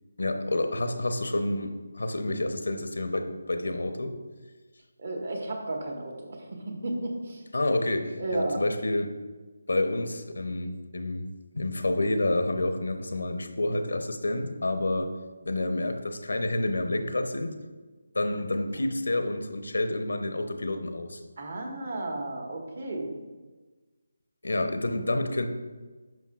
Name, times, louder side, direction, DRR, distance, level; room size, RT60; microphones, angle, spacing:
voice 1, 0.2-4.2 7.5-9.1 9.7-11.3 11.5-15.1 15.5-17.5 18.1-21.2 24.4-25.5, left 2 dB, 70° left, 7 dB, 0.7 m, -29 dB
voice 2, 5.0-7.4 8.2-8.6 18.7-18.8 21.4-23.1, right 2 dB, 55° right, 0 dB, 1.6 m, -33 dB
10.5 x 5.4 x 2.4 m, 1.3 s
figure-of-eight pair, 155°, 0 cm